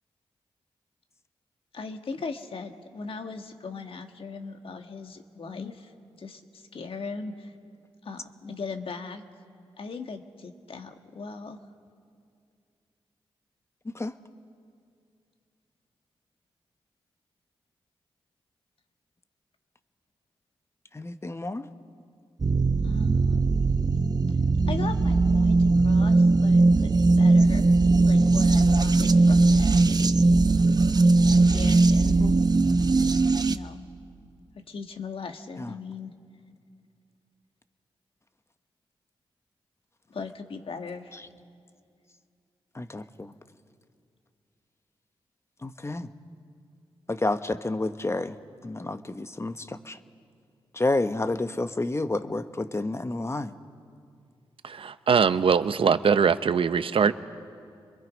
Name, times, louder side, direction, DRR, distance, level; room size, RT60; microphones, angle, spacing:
voice 1, 1.7-7.5 8.0-9.2 9.8-11.6 22.8-23.5 24.3-24.4 24.7-27.8 28.1-30.0 31.3-32.3 33.4-33.8 34.7-36.1 40.1-41.2, left 4 dB, 65° left, 6 dB, 1.7 m, -39 dB
voice 2, 20.9-21.7 32.1-32.4 35.6-35.7 42.8-43.3 45.6-46.1 47.1-48.3 48.6-49.5 49.9-50.0 50.8-53.5, left 2 dB, 25° left, 10 dB, 1.2 m, -29 dB
sound 1, 22.4-33.6, right 3 dB, 40° right, 0.9 m, -20 dB
voice 3, 54.6-57.1, right 6 dB, 60° right, 13 dB, 0.8 m, -22 dB
28.5 x 22.0 x 5.3 m, 2.3 s
supercardioid pair, 45°, 10 cm